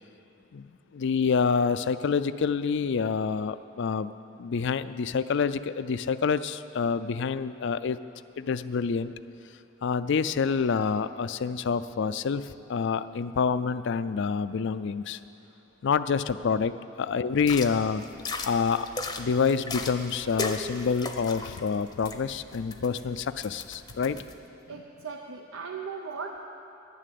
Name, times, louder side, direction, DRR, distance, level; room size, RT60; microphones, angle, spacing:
voice 1, 0.5-4.1 4.4-8.0 8.4-9.1 9.8-15.2 15.8-18.0 18.4-18.9 19.2-24.2, left 5 dB, 60° left, 14 dB, 0.4 m, -27 dB
sound 1, 17.4-24.3, left 3 dB, 20° left, 0.7 m, -37 dB
voice 2, 24.7-26.4, right 5 dB, 80° right, 1 dB, 0.8 m, -38 dB
11.0 x 9.9 x 8.4 m, 2.8 s
head